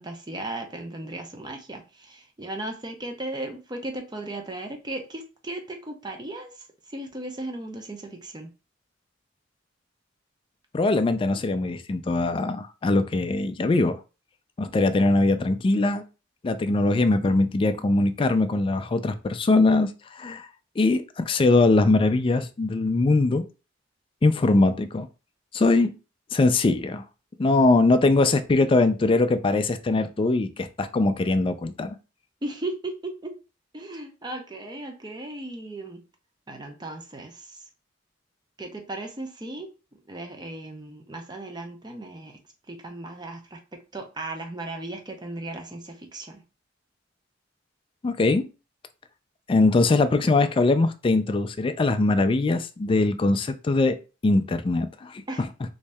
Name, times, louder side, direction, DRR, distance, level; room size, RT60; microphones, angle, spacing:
voice 1, 0.0-8.5 32.4-33.4 33.7-36.0 36.5-37.7 38.6-39.7 40.1-42.4 42.7-46.4 55.3-55.4, right 2 dB, 20° right, 4 dB, 0.6 m, -36 dB
voice 2, 10.7-14.0 14.6-16.0 16.4-20.5 20.8-23.4 24.2-25.1 25.5-25.9 26.3-27.0 27.4-31.9 48.0-48.4 49.5-53.9 54.2-55.2, left 2 dB, 25° left, 9 dB, 0.3 m, -21 dB
3.1 x 2.7 x 3.4 m, 0.32 s
head